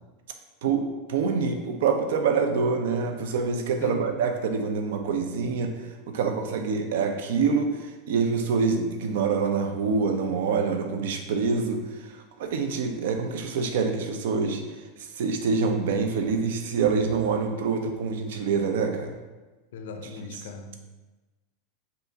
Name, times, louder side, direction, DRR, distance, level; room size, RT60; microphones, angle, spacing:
voice 1, 0.6-5.7 6.1-11.8 12.4-14.6 15.2-19.1, right 5 dB, 75° right, 5 dB, 0.6 m, -26 dB
voice 2, 19.7-21.0, left 5 dB, 80° left, 7 dB, 0.5 m, -38 dB
5.4 x 2.5 x 3.9 m, 1.2 s
supercardioid pair, 170°, 0 cm